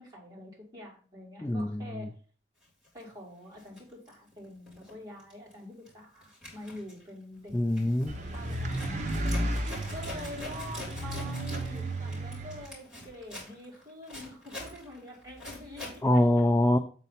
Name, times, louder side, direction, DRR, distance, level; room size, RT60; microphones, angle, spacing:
voice 1, 0.0-2.1 2.9-7.5 8.3-16.4, left 1 dB, 20° right, 2.9 m, -46 dB
voice 2, 1.4-1.8 7.5-8.1 16.0-16.8, left 1 dB, 15° left, 0.3 m, -24 dB
Zipper (clothing), 2.8-3.0 3.5-4.9 5.2-5.5 5.9-16.0, left 1 dB, 5° right, 3.6 m, -45 dB
sound 1, 8.1-12.7, right 1 dB, 40° right, 1.1 m, -33 dB
7.9 x 4.1 x 5.7 m
head